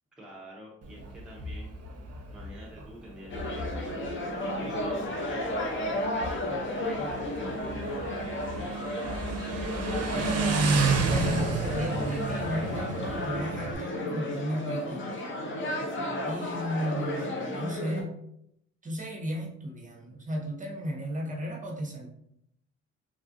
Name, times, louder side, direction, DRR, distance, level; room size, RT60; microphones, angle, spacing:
voice 1, 0.2-1.7 2.3-7.1, equal, ahead, -4 dB, 0.6 m, -49 dB
Motorcycle, 0.8-13.7, right 3 dB, 55° right, 0.6 m, -32 dB
sound 1, 3.3-18.0, left 1 dB, 40° left, 0.6 m, -33 dB
voice 2, 10.1-15.1 16.2-18.1 18.8-22.1, equal, 25° right, -1 dB, 0.8 m, -35 dB
3.4 x 2.4 x 2.5 m, 0.75 s
cardioid pair, 90°, 30 cm